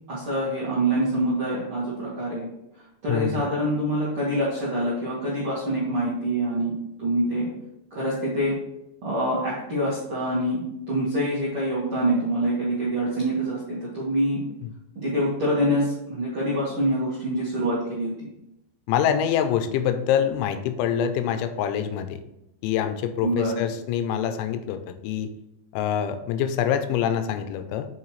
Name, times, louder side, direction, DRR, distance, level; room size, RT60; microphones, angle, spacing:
voice 1, 0.1-2.5 3.0-6.7 7.0-7.5 7.9-8.5 9.0-14.4 14.9-18.1 23.2-23.6, right 1 dB, 60° right, -8 dB, 1.4 m, -25 dB
voice 2, 3.1-3.5 18.9-22.2 22.6-25.3 25.7-27.9, left 9 dB, 85° left, 9 dB, 3.0 m, -25 dB
7.2 x 5.6 x 3.2 m, 0.86 s
omnidirectional pair, 5.2 m